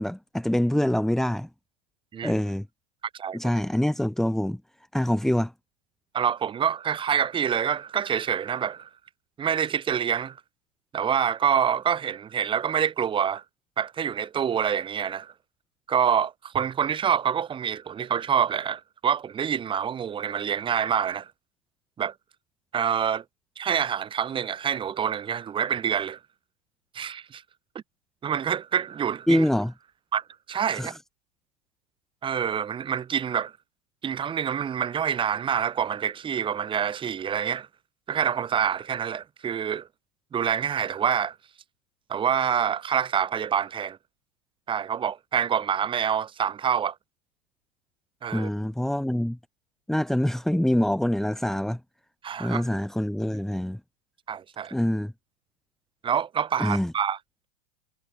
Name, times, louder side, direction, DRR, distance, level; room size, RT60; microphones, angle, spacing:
voice 1, 0.0-1.5 2.2-2.7 3.3-4.6 4.9-5.5 29.3-29.7 30.7-31.0 48.3-49.4 49.9-51.8 52.4-53.8 54.7-55.1 56.6-56.9, left 1 dB, ahead, 3.7 m, -25 dB
voice 2, 6.1-8.9 9.4-10.4 10.9-13.4 13.8-15.3 15.9-21.3 22.0-22.1 22.7-23.2 23.6-26.2 26.9-27.4 28.2-29.4 30.1-30.9 32.2-33.5 34.0-37.7 38.1-39.9 40.3-41.3 42.1-44.0 44.7-46.9 48.2-48.5 52.2-52.6 54.3-54.7 56.0-57.2, right 8 dB, 25° right, 6.6 m, -26 dB
figure-of-eight pair, 95°, 21 cm